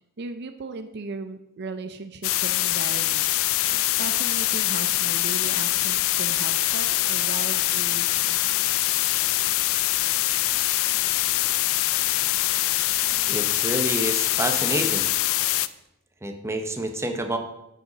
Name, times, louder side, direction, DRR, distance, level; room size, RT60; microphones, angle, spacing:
voice 1, 0.2-3.5 3.8-8.7, right 4 dB, 50° right, 9 dB, 0.5 m, -37 dB
sound 1, 2.2-15.7, left 16 dB, 65° left, 0.4 m, -24 dB
voice 2, 13.3-15.1 16.2-17.4, right 1 dB, 10° right, 4 dB, 0.8 m, -28 dB
7.6 x 6.5 x 5.4 m, 0.86 s
head